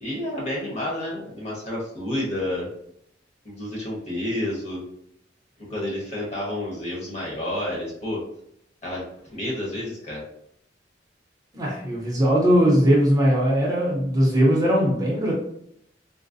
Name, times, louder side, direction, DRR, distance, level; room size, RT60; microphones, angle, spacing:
voice 1, 0.0-2.7 3.4-4.8 5.6-8.2 8.8-10.2, left 1 dB, 35° left, -4 dB, 1.1 m, -30 dB
voice 2, 11.5-15.3, equal, 20° right, -4 dB, 0.7 m, -20 dB
3.9 x 2.1 x 2.6 m, 0.71 s
head